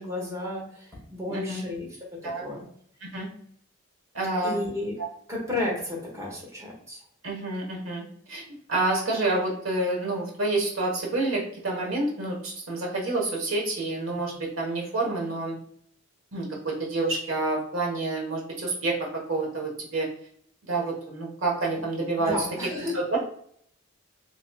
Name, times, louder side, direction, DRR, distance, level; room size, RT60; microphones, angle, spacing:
voice 1, 0.0-2.1 2.4-2.7 4.4-4.9 5.3-7.0 14.1-14.4 22.2-22.9, left 2 dB, 15° right, -3 dB, 1.2 m, -32 dB
voice 2, 1.3-1.6 2.2-2.4 3.0-3.3 4.1-4.6 5.0-5.1 7.2-15.6 16.3-20.1 20.7-22.3 22.9-23.2, right 2 dB, 80° right, -1 dB, 1.1 m, -28 dB
4.2 x 3.1 x 2.2 m, 0.63 s
head